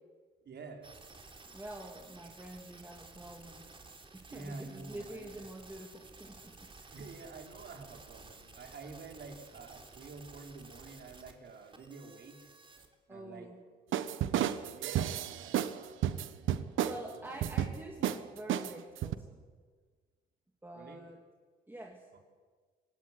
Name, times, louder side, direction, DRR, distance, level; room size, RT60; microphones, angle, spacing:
voice 1, 0.4-0.9 4.3-5.4 6.9-12.4 13.1-13.5 14.2-15.0 15.3-16.2 17.1-17.4 20.7-21.1, right 4 dB, 60° right, 2 dB, 5.1 m, -49 dB
sound 1, 0.8-12.9, right 3 dB, 25° right, 3.7 m, -54 dB
voice 2, 1.5-3.7 4.1-6.7 13.1-13.6 16.8-19.4 20.6-21.2 21.7-22.1, right 1 dB, 10° right, 0 dB, 3.0 m, -46 dB
sound 2, 13.9-15.8 16.0-17.0 17.4-17.7 18.0-18.2 18.5-19.2, right 11 dB, 80° right, 1.3 m, -31 dB
27.0 x 17.0 x 9.7 m, 1.5 s
cardioid pair, 90°, 20 cm